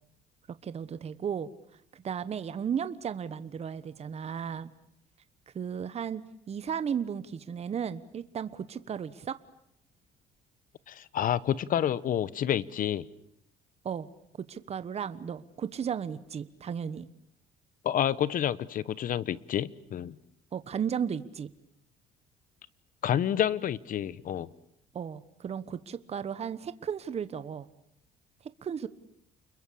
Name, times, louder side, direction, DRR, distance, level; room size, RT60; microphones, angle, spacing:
voice 1, 0.6-1.5 1.9-4.7 5.5-6.2 6.5-9.4 13.8-14.1 14.5-17.1 20.5-21.5 24.9-27.7 28.6-28.9, right 7 dB, 40° right, 14 dB, 1.2 m, -34 dB
voice 2, 10.9-13.1 17.8-20.2 23.0-24.5, left 10 dB, 55° left, 19 dB, 1.0 m, -29 dB
29.5 x 22.0 x 8.4 m, 0.73 s
cardioid pair, 110°, 17 cm